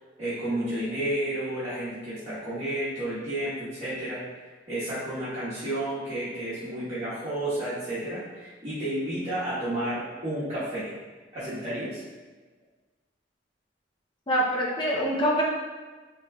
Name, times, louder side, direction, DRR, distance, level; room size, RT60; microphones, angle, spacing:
voice 1, 0.2-4.2 4.7-10.9 11.3-12.0, right 1 dB, 30° right, -15 dB, 1.2 m, -31 dB
voice 2, 14.3-15.4, equal, 25° left, -5 dB, 0.7 m, -25 dB
4.1 x 3.3 x 2.3 m, 1.3 s
head